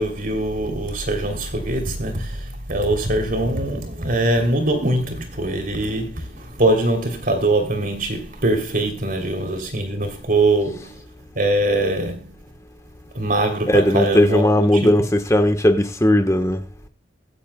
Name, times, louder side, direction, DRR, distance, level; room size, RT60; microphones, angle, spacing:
voice 1, 0.0-11.0 11.3-12.3 13.1-15.0, right 1 dB, 50° right, 3.0 m, -22 dB
voice 2, 13.6-16.6, left 1 dB, 15° left, 1.1 m, -17 dB
24.0 x 8.6 x 2.2 m
head